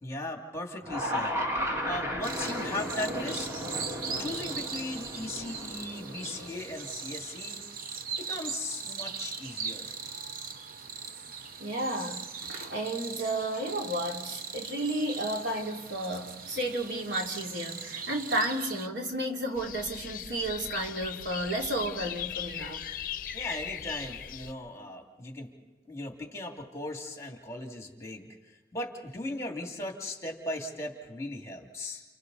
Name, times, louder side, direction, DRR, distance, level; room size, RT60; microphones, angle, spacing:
voice 1, 0.0-1.4 1.8-3.6 4.2-7.6 8.2-10.0 23.3-25.5 25.9-28.3 28.7-32.0, left 1 dB, 15° left, 2.5 m, -37 dB
sound 1, 0.8-7.1, equal, 15° right, 2.1 m, -35 dB
sound 2, 2.2-18.9, right 6 dB, 50° right, 1.0 m, -40 dB
voice 2, 11.6-22.8, right 1 dB, 80° right, 3.1 m, -32 dB
sound 3, 19.6-24.5, left 9 dB, 50° left, 0.6 m, -39 dB
30.0 x 30.0 x 4.1 m
head